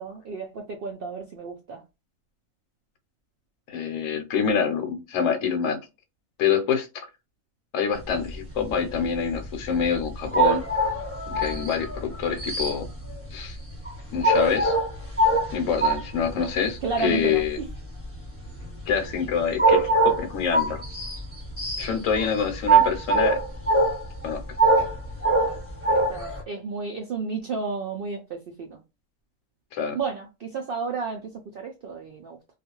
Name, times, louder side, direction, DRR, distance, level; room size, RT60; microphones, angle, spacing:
voice 1, 0.0-1.8 11.3-11.7 16.3-16.5 16.8-17.7 25.4-25.6 25.9-28.8 29.9-32.4, right 4 dB, 80° right, 0.5 m, -32 dB
voice 2, 3.7-5.8 6.4-7.1 7.7-10.6 11.3-12.9 13.3-13.6 14.1-14.7 15.5-17.6 18.9-20.8 21.8-23.4 24.2-24.4 29.7-30.0, left 6 dB, 70° left, 1.0 m, -26 dB
sound 1, 8.1-8.7 9.0-16.6 17.1-17.8 18.3-26.4, right 2 dB, 10° right, 1.0 m, -23 dB
2.4 x 2.3 x 2.9 m
omnidirectional pair, 1.5 m